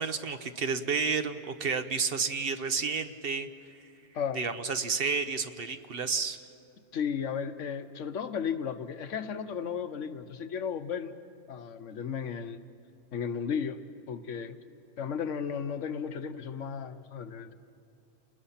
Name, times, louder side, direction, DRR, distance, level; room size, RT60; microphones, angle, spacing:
voice 1, 0.0-3.5 4.3-6.4, right 5 dB, 55° right, 9 dB, 1.0 m, -31 dB
voice 2, 6.9-11.1 11.5-12.6 13.1-13.8 14.1-14.6 15.0-17.5, left 7 dB, 90° left, 10 dB, 1.2 m, -34 dB
29.0 x 20.5 x 5.7 m, 2.6 s
omnidirectional pair, 1.2 m